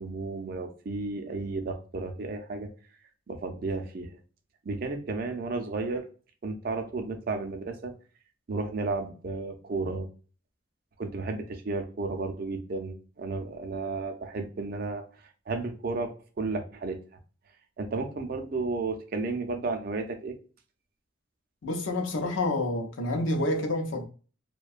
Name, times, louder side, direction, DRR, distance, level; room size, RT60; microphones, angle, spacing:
voice 1, 0.0-2.7 3.3-4.1 4.6-6.1 6.4-7.9 8.5-10.1 11.0-15.0 15.5-16.1 16.4-17.0 17.8-20.4, right 3 dB, 50° right, 0.4 m, -33 dB
voice 2, 21.6-24.0, left 1 dB, 80° left, 0.6 m, -28 dB
2.6 x 2.2 x 2.4 m
head